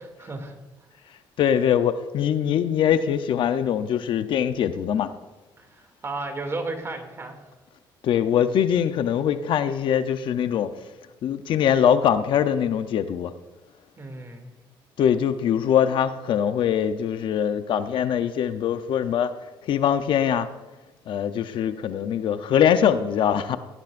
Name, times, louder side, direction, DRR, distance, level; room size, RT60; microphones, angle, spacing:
voice 1, 0.2-0.6 5.6-7.4 14.0-14.5, right 2 dB, 30° right, 2.5 m, -34 dB
voice 2, 1.4-5.1 8.0-10.7 11.2-13.3 15.0-19.3 19.6-20.5 21.1-23.6, left 9 dB, 65° left, 0.7 m, -22 dB
17.5 x 13.5 x 2.5 m
cardioid pair, 95°, 9 cm